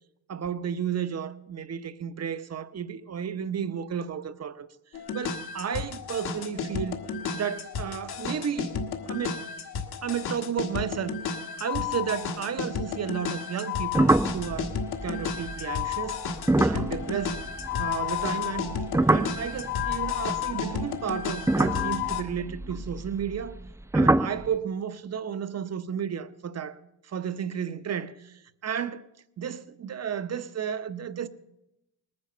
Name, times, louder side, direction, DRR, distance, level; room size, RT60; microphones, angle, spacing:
voice 1, 0.3-4.7 5.1-7.0 7.3-8.7 9.1-9.5 10.0-11.2 11.6-14.7 15.0-16.2 16.6-17.5 17.8-18.7 19.1-23.6 23.9-26.8 27.0-29.1 29.4-31.3, right 8 dB, 40° right, 0.8 m, -32 dB
sound 1, 4.9-22.2, left 7 dB, 60° left, 1.7 m, -32 dB
sound 2, 13.9-18.3 18.5-20.7 21.3-23.7 23.9-24.5, right 2 dB, 5° right, 0.5 m, -26 dB
19.5 x 9.8 x 6.7 m
cardioid pair, 105°, 41 cm